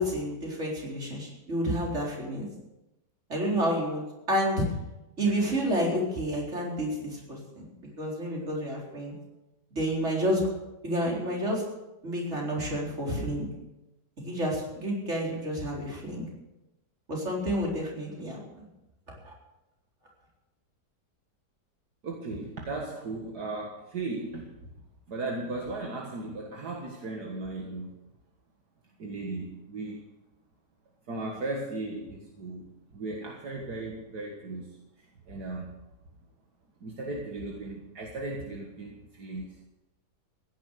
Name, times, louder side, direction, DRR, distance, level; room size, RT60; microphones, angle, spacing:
voice 1, 0.0-2.5 3.3-4.6 5.2-7.7 8.0-9.1 9.8-10.4 10.8-11.6 12.0-13.5 14.2-16.3 17.1-18.7 19.2-19.3, equal, 40° right, -2 dB, 4.4 m, -30 dB
voice 2, 22.0-24.6 25.1-27.9 29.0-30.0 31.1-34.7 35.0-35.7 36.8-39.6, right 2 dB, 70° right, 0 dB, 2.2 m, -36 dB
16.5 x 10.5 x 6.5 m, 0.97 s
omnidirectional pair, 1.8 m